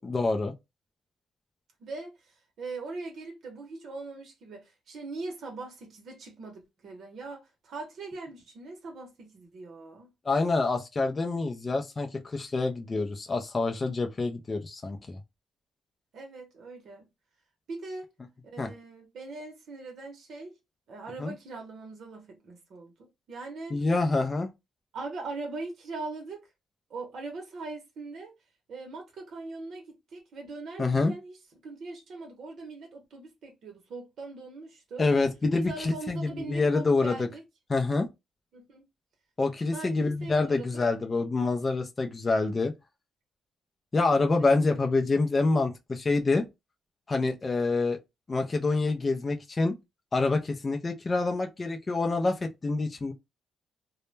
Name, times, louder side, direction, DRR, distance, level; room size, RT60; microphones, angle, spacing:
voice 1, 0.0-0.5 10.3-15.2 18.6-18.7 21.2-21.3 23.7-24.5 30.8-31.1 35.0-37.3 37.7-38.1 39.4-42.7 43.9-46.4 47.1-48.0 48.3-49.7 50.1-53.1, left 3 dB, 30° left, 0.4 m, -26 dB
voice 2, 1.8-10.1 16.1-17.0 17.7-18.1 18.4-20.6 20.9-23.9 24.9-26.4 26.9-28.3 28.7-31.4 31.6-35.1 35.6-37.4 38.5-38.8 39.7-40.7 44.4-44.9, right 3 dB, 65° right, 0.7 m, -41 dB
2.1 x 2.0 x 3.1 m
cardioid pair, 90°, 0 cm